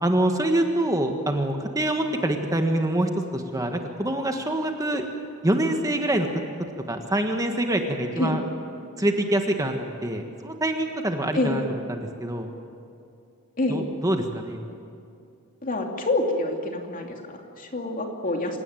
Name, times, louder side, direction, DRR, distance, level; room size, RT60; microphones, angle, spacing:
voice 1, 0.0-5.0 5.4-6.3 6.9-8.4 9.0-11.6 11.9-12.5 13.7-14.6, right 1 dB, 15° right, 4 dB, 1.4 m, -25 dB
voice 2, 11.3-11.7 13.6-13.8 15.6-18.6, left 2 dB, 40° left, 2 dB, 2.8 m, -27 dB
27.0 x 17.0 x 9.1 m, 2.5 s
head